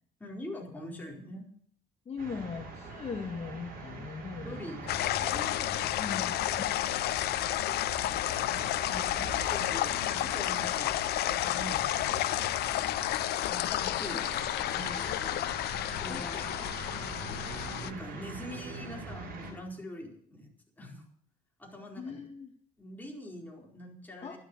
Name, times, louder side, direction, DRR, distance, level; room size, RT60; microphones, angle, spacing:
voice 1, 0.2-1.5 4.4-6.3 8.8-10.9 11.3-12.3 13.4-14.3 14.7-15.6 15.9-16.6 17.7-20.5 20.8-21.1 21.6-22.3 22.8-24.4, left 1 dB, 10° left, -1 dB, 4.5 m, -44 dB
voice 2, 2.0-4.7 6.0-6.8 9.2-9.3 15.9-16.6 22.0-22.5 24.2-24.4, left 5 dB, 35° left, 3 dB, 1.7 m, -40 dB
sound 1, 2.2-19.5, right 3 dB, 60° right, 7.3 m, -43 dB
sound 2, 4.9-17.9, left 15 dB, 70° left, 0.6 m, -31 dB
12.0 x 10.5 x 8.1 m, 0.63 s
cardioid pair, 110°, 17 cm